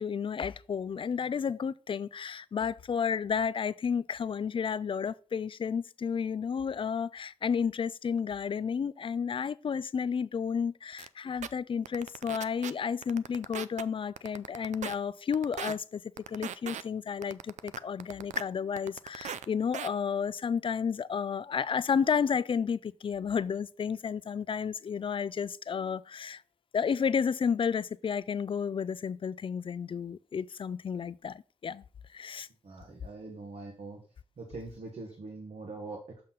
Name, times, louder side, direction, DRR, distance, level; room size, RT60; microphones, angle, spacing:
voice 1, 0.0-16.0 16.3-26.4 26.7-31.8 32.1-32.5, left 6 dB, 45° left, 0.4 m, -32 dB
sound 1, 11.0-11.1 11.4-11.5 11.8-12.7 13.0-13.8 14.2-14.9 15.3-15.7 16.2-16.8 17.2-18.4 18.8-19.4 19.7-19.9, right 9 dB, 85° right, 0.4 m, -38 dB
voice 2, 32.6-34.0 34.4-36.2, right 3 dB, 65° right, 1.5 m, -43 dB
6.5 x 5.8 x 3.9 m
cardioid pair, 75°, 12 cm